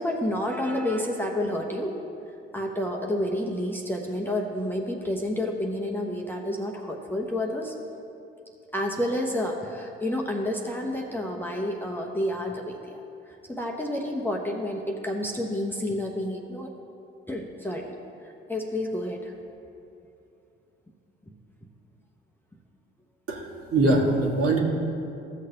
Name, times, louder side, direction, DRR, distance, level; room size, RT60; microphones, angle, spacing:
voice 1, 0.0-1.9 2.5-7.7 8.7-13.0 13.5-16.7 17.3-18.0 18.2-19.3, left 1 dB, 5° left, -1 dB, 0.9 m, -29 dB
voice 2, 23.3-24.6, right 2 dB, 50° right, -2 dB, 1.7 m, -23 dB
14.5 x 6.5 x 2.9 m, 2.7 s
hypercardioid pair, 50°, 30 cm